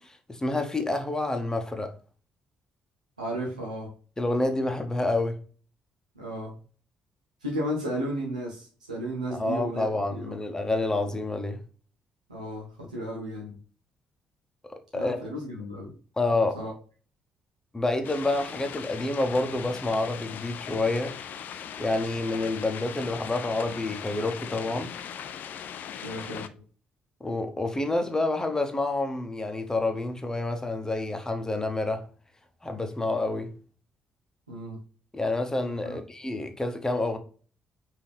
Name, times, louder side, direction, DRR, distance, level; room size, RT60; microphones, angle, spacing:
voice 1, 0.0-2.0 4.2-5.4 9.3-11.6 14.7-15.2 16.2-16.6 17.7-21.2 21.8-24.9 27.2-32.0 32.6-33.5 35.1-37.2, left 2 dB, 15° left, 1.0 m, -28 dB
voice 2, 3.2-3.9 6.1-6.5 7.4-9.9 10.2-10.4 12.3-13.6 14.9-15.9 16.5-16.7 26.0-26.5 34.5-34.8 35.8-36.0, equal, 85° right, 0.8 m, -34 dB
sound 1, 18.0-26.5, left 8 dB, 50° left, 0.4 m, -39 dB
5.3 x 2.8 x 3.2 m
figure-of-eight pair, 45°, 4 cm